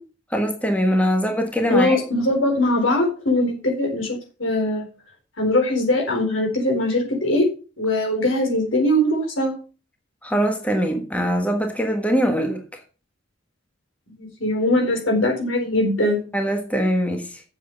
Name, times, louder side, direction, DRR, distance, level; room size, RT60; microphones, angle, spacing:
voice 1, 0.3-2.0 10.2-12.6 16.3-17.4, equal, 5° left, 1.4 m, -22 dB
voice 2, 1.7-4.9 5.4-7.5 7.8-9.5 14.2-16.2, left 1 dB, 75° left, 4.3 m, -21 dB
7.5 x 7.4 x 6.8 m
head